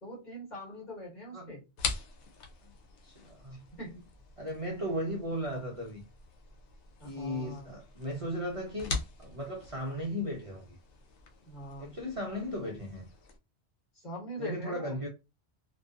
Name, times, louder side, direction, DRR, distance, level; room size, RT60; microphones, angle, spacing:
voice 1, 0.0-1.6 3.5-4.1 7.0-7.7 11.5-11.9 13.9-15.0, equal, 40° left, 1.4 m, -43 dB
sound 1, 1.8-13.4, left 4 dB, 85° left, 0.9 m, -43 dB
voice 2, 3.0-3.6 4.4-6.0 7.0-10.8 11.8-13.1 14.4-15.1, equal, 40° right, 0.5 m, -36 dB
2.7 x 2.2 x 2.4 m
omnidirectional pair, 1.1 m